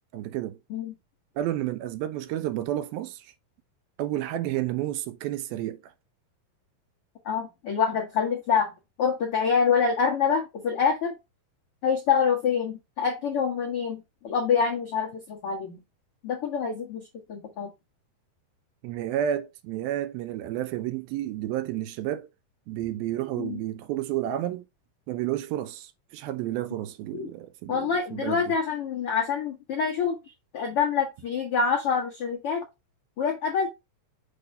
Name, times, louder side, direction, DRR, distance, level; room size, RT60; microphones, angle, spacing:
voice 1, 0.1-0.6 1.4-3.3 4.0-5.9 18.8-22.3 22.7-24.7 25.1-28.4, right 12 dB, 80° right, 2.3 m, -31 dB
voice 2, 7.2-8.7 9.0-11.1 11.8-15.8 16.2-17.7 23.4-23.6 27.1-27.3 27.7-30.1 30.5-32.6 33.2-33.7, left 6 dB, 90° left, 1.2 m, -26 dB
6.8 x 2.6 x 5.3 m
omnidirectional pair, 4.5 m